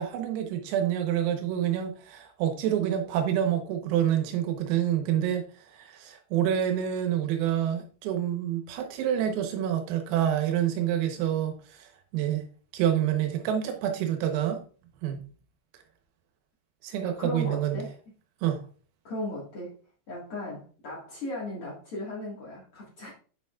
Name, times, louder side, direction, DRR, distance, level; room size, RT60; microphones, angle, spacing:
voice 1, 0.0-5.4 5.7-12.5 12.7-14.6 15.0-15.2 16.8-17.8 18.4-18.6, right 10 dB, 90° right, 5 dB, 3.9 m, -27 dB
voice 2, 17.0-17.9 19.0-19.7 20.1-23.1, left 1 dB, 85° left, -6 dB, 1.2 m, -36 dB
8.7 x 6.9 x 2.4 m, 0.40 s
omnidirectional pair, 5.9 m